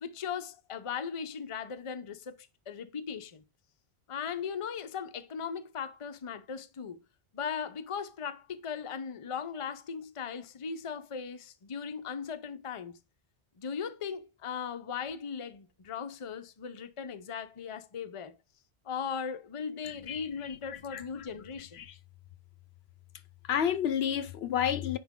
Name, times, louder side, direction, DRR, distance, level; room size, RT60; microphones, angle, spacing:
voice 1, 0.0-2.3 2.7-3.4 4.1-7.0 7.3-13.0 13.6-18.3 18.9-21.8, left 6 dB, 35° left, 0.6 m, -38 dB
voice 2, 19.8-20.3 20.7-21.3 21.8-22.0 23.5-25.0, left 9 dB, 70° left, 0.9 m, -31 dB
9.9 x 4.4 x 3.7 m
omnidirectional pair, 1.1 m